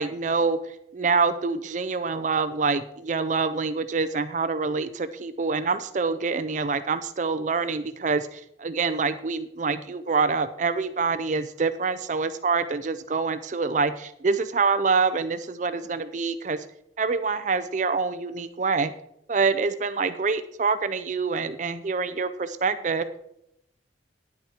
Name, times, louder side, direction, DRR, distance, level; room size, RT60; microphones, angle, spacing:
voice 1, 0.0-16.6 17.0-18.9 19.3-23.1, right 4 dB, 45° right, 12 dB, 0.5 m, -26 dB
10.0 x 9.1 x 4.3 m, 0.75 s
head